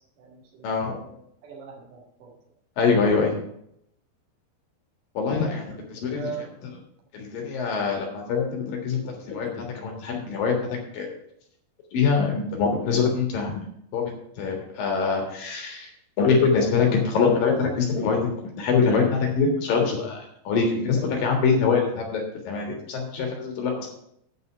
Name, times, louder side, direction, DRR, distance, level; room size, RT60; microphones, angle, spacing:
voice 1, 0.2-1.2 1.4-2.3 6.1-6.4, right 6 dB, 55° right, -1 dB, 3.6 m, -40 dB
voice 2, 2.8-3.4 5.1-6.7 7.1-10.6 10.9-11.1 11.9-13.6 13.9-14.0 14.4-15.9 16.2-23.9, left 5 dB, 65° left, 1 dB, 3.2 m, -24 dB
9.1 x 5.5 x 7.7 m, 0.73 s
omnidirectional pair, 4.6 m